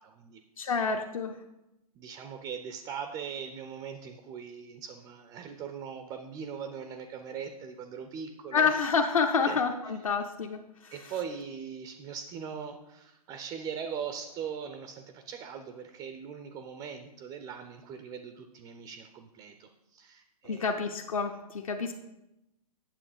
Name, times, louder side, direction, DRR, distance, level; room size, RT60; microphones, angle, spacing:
voice 1, 0.0-0.8 2.0-8.7 9.5-9.6 10.9-20.7, right 7 dB, 15° right, 8 dB, 0.4 m, -40 dB
voice 2, 0.6-1.4 8.5-10.9 20.4-21.9, left 5 dB, 60° left, 3 dB, 0.9 m, -28 dB
8.7 x 7.2 x 4.9 m, 0.90 s
figure-of-eight pair, 125°, 20 cm